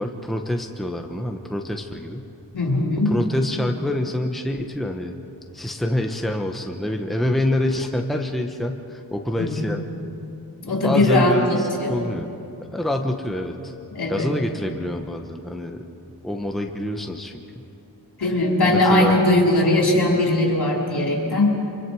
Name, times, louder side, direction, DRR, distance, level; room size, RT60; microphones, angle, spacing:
voice 1, 0.0-2.3 3.0-5.1 5.5-9.8 10.7-12.3 12.7-13.7 14.1-15.8 16.2-17.4 18.6-19.2, left 1 dB, ahead, 3 dB, 1.1 m, -26 dB
voice 2, 2.5-3.1 9.4-9.5 10.6-12.0 13.9-14.3 18.2-21.5, left 1 dB, 70° left, -2 dB, 4.7 m, -19 dB
25.0 x 25.0 x 4.8 m, 2.8 s
wide cardioid pair, 85°, 40 cm